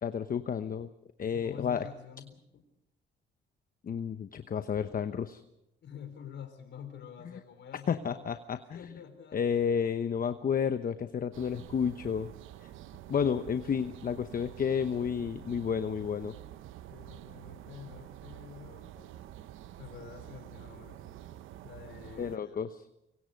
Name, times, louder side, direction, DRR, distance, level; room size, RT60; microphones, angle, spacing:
voice 1, 0.0-0.9 1.2-1.9 3.8-5.4 7.9-8.9 9.3-12.3 12.6-12.7 13.1-16.3 22.2-22.7, left 7 dB, 45° left, 10 dB, 1.0 m, -31 dB
voice 2, 1.3-2.6 5.8-8.3 8.7-9.4 16.9-19.3 19.8-21.0 21.6-22.7, left 8 dB, 65° left, 7 dB, 4.3 m, -48 dB
sound 1, 11.3-22.4, right 12 dB, 85° right, 0.8 m, -48 dB
24.5 x 23.5 x 5.3 m, 0.87 s
cardioid pair, 90°, 20 cm